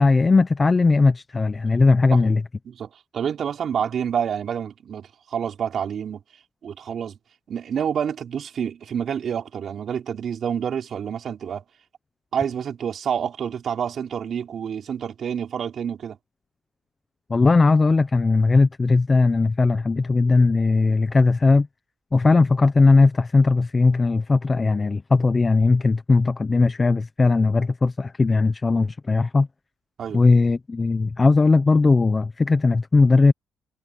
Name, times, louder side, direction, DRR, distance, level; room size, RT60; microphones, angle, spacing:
voice 1, 0.0-2.4 17.3-21.7 22.1-29.5 30.1-33.3, left 3 dB, 25° left, 1.0 m, -18 dB
voice 2, 2.7-6.2 6.6-7.2 7.5-11.6 12.3-16.2 30.0-30.2, right 8 dB, 60° right, 3.8 m, -28 dB
cardioid pair, 90°, 0 cm